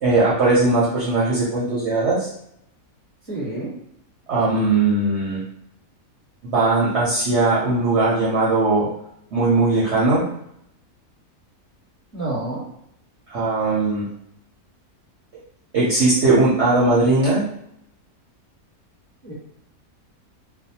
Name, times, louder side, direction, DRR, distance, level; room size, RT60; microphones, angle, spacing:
voice 1, 0.0-2.3 4.3-5.4 6.4-8.9 9.3-10.2 13.3-14.1 15.7-17.4, right 2 dB, 60° right, -7 dB, 0.8 m, -19 dB
voice 2, 3.3-3.7 12.1-12.6 19.2-19.3, right 2 dB, 10° left, -8 dB, 0.8 m, -28 dB
2.5 x 2.1 x 2.8 m, 0.73 s
omnidirectional pair, 1.6 m